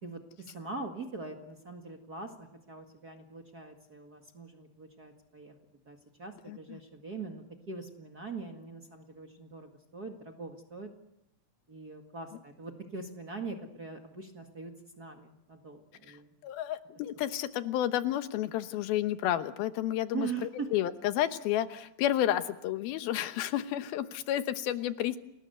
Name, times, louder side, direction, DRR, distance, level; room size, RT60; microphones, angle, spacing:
voice 1, 0.0-5.5 5.8-10.9 11.7-16.3 20.1-20.7, right 4 dB, 35° right, 3 dB, 1.7 m, -42 dB
voice 2, 6.5-6.8 16.1-16.2 16.4-25.2, left 12 dB, 85° left, 10 dB, 3.0 m, -31 dB
29.5 x 20.0 x 8.0 m, 0.85 s
omnidirectional pair, 4.2 m